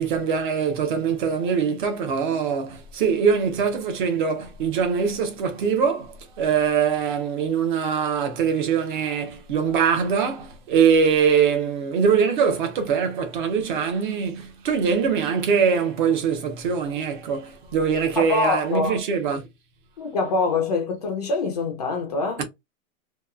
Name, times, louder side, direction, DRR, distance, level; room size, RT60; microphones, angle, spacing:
voice 1, 0.0-19.5 22.4-22.5, right 6 dB, 35° right, 0.7 m, -23 dB
voice 2, 18.2-19.0 20.0-22.4, left 3 dB, 30° left, 0.5 m, -24 dB
2.9 x 2.3 x 2.3 m
hypercardioid pair, 165°, 41 cm